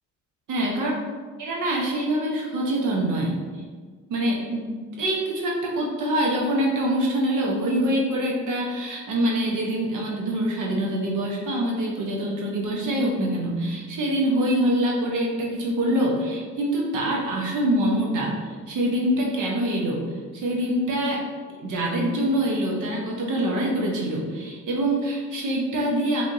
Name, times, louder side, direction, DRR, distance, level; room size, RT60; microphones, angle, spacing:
voice 1, 0.5-0.9 1.4-3.4 4.1-4.7 5.0-18.3 18.7-20.0 20.3-21.2 21.6-26.2, right 1 dB, 75° right, -1 dB, 1.1 m, -25 dB
5.3 x 3.5 x 2.7 m, 1.5 s
cardioid pair, 90°, 30 cm